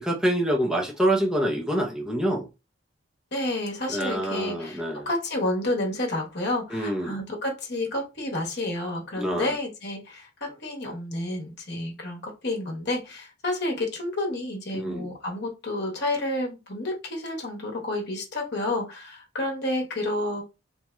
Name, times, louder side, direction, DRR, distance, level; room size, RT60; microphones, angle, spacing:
voice 1, 0.0-2.5 3.9-5.1 6.7-7.2 9.2-9.5 14.7-15.1, right 1 dB, 5° right, 0.6 m, -26 dB
voice 2, 3.3-20.4, left 1 dB, 50° left, 1.1 m, -30 dB
3.0 x 2.7 x 2.2 m
head